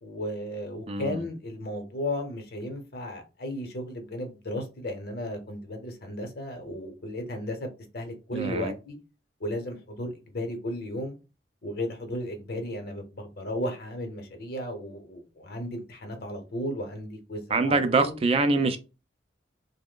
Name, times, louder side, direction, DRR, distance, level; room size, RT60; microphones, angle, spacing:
voice 1, 0.0-7.7 7.9-9.0 9.4-11.1 11.6-18.2, left 1 dB, 55° left, 0.8 m, -34 dB
voice 2, 0.9-1.2 8.3-8.7 17.5-18.8, right 3 dB, 30° right, 0.3 m, -24 dB
3.1 x 2.1 x 3.7 m
head